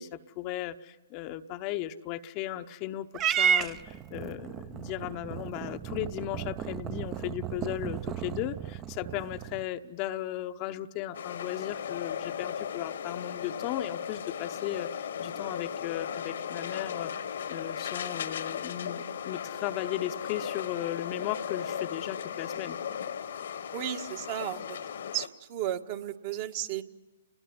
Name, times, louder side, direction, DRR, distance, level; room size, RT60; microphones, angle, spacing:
voice 1, 0.0-17.1 17.5-22.8, left 13 dB, 35° left, 9 dB, 0.9 m, -36 dB
Purr / Meow, 3.1-9.6, right 8 dB, 25° right, 0.8 m, -33 dB
sound 1, 11.1-25.3, left 8 dB, 65° left, 1.5 m, -36 dB
voice 2, 23.7-24.8 25.1-26.8, right 11 dB, 45° right, 6 dB, 1.7 m, -34 dB
29.5 x 21.0 x 9.6 m, 1.2 s
hypercardioid pair, 130°, 0 cm